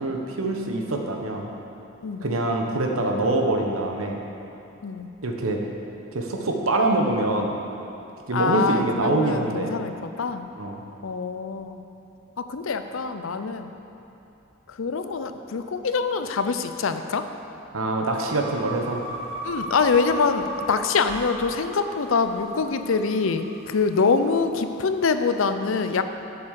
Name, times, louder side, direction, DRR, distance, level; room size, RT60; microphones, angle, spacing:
voice 1, 0.0-1.5 2.2-4.2 5.2-5.6 6.1-7.5 8.3-9.8 10.6-10.8 17.7-19.1, right 2 dB, 80° right, 2 dB, 1.1 m, -25 dB
voice 2, 8.3-10.5 11.0-11.8 12.4-13.7 14.7-17.3 19.4-26.0, left 4 dB, 70° left, 9 dB, 0.5 m, -25 dB
sound 1, 18.2-24.6, right 1 dB, 30° right, 1.3 m, -37 dB
8.5 x 7.1 x 6.5 m, 2.8 s
head